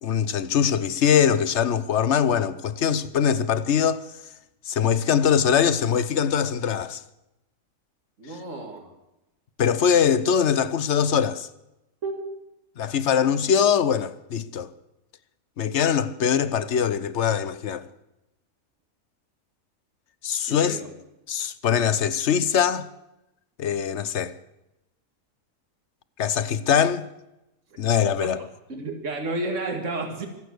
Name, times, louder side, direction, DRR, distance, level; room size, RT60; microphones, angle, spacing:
voice 1, 0.0-4.1 4.6-7.0 9.6-11.5 12.8-14.7 15.6-17.9 20.2-20.8 21.3-22.9 23.6-24.3 26.2-27.1 27.8-28.4, left 8 dB, 60° left, 1.0 m, -22 dB
voice 2, 8.2-8.9 12.0-12.5 20.5-20.9 27.8-27.9 28.2-28.3 28.7-30.3, right 2 dB, 60° right, 2.5 m, -32 dB
25.0 x 8.6 x 6.5 m
omnidirectional pair, 1.4 m